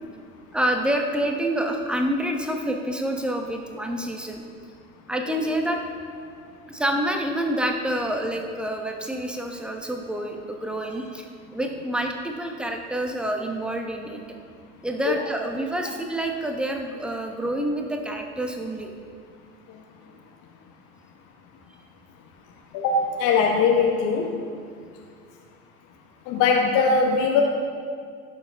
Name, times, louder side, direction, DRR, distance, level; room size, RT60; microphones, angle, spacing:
voice 1, 0.5-4.4 5.1-5.8 6.7-11.2 11.5-14.2 14.8-18.9, right 1 dB, ahead, 3 dB, 1.1 m, -27 dB
voice 2, 22.7-24.3 26.3-27.4, left 5 dB, 45° left, 1 dB, 1.1 m, -20 dB
16.5 x 6.7 x 3.6 m, 2.1 s
figure-of-eight pair, 75°, 44 cm